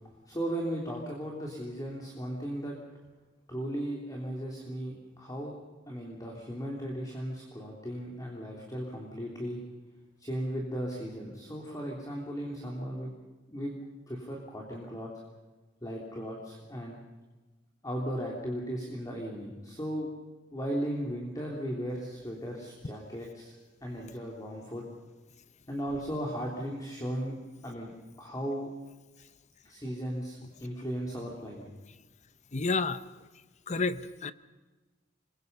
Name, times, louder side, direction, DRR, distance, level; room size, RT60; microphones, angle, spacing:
voice 1, 0.3-2.7 3.5-5.6 5.9-9.6 10.2-13.1 13.5-13.7 14.1-15.1 15.8-17.0 17.8-20.1 20.5-23.5 23.8-24.8 25.7-27.3 27.6-27.9 28.2-28.7 29.6-31.7, equal, 20° left, -2 dB, 3.3 m, -36 dB
voice 2, 32.5-33.1 33.7-34.3, left 3 dB, 40° left, 14 dB, 0.8 m, -30 dB
27.5 x 22.5 x 5.5 m, 1.2 s
head